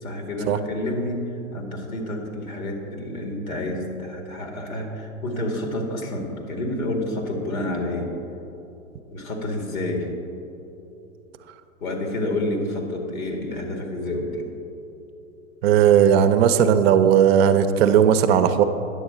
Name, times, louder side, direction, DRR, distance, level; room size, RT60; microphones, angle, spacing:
voice 1, 0.0-8.1 9.1-10.1 11.8-14.5, left 1 dB, 80° left, 2 dB, 1.9 m, -29 dB
voice 2, 15.6-18.6, right 8 dB, 50° right, 9 dB, 0.6 m, -16 dB
9.7 x 7.1 x 4.9 m, 2.9 s
hypercardioid pair, 115°, 41 cm